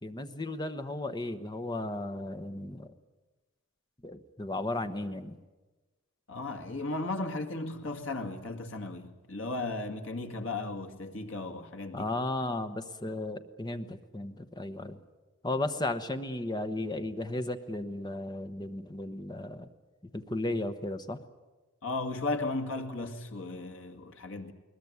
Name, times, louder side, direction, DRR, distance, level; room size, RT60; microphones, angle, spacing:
voice 1, 0.0-2.9 4.0-5.4 11.9-15.0 15.4-19.7 20.1-21.2, left 2 dB, 20° left, 1.0 m, -35 dB
voice 2, 6.3-12.1 21.8-24.5, left 2 dB, 80° left, 2.2 m, -35 dB
21.0 x 20.5 x 9.6 m
head